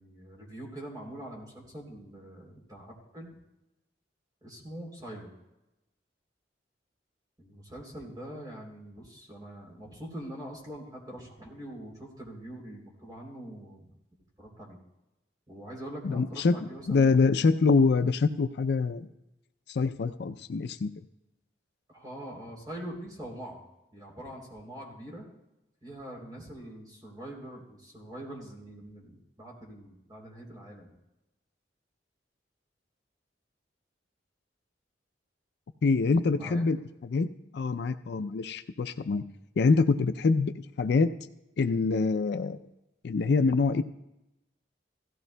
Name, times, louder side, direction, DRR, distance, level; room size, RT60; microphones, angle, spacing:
voice 1, 0.0-3.4 4.4-5.3 7.4-13.9 14.4-14.8 15.5-17.4 21.9-23.6 23.9-25.2 25.8-30.9 36.4-36.6, right 1 dB, 20° right, -2 dB, 3.2 m, -43 dB
voice 2, 16.0-16.6 16.9-19.1 19.7-20.9 35.8-36.8 37.0-37.3 37.5-39.2 39.6-40.5 40.8-41.1 41.6-42.6 43.0-43.8, left 4 dB, 65° left, 10 dB, 0.4 m, -25 dB
16.5 x 15.0 x 2.2 m, 0.93 s
head